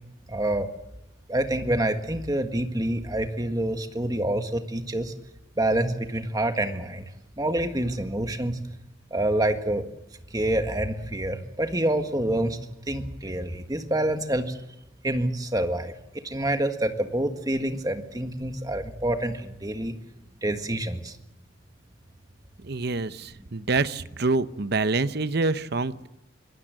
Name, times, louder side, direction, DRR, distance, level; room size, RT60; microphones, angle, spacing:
voice 1, 0.3-0.7 1.3-5.1 5.5-7.1 7.4-8.6 9.1-9.9 10.3-12.6 12.9-14.6 15.0-15.9 16.2-19.9 20.4-21.1, right 1 dB, 20° right, 6 dB, 1.7 m, -27 dB
voice 2, 22.6-26.1, right 3 dB, 55° right, 13 dB, 0.8 m, -26 dB
24.0 x 19.5 x 7.7 m, 0.88 s
head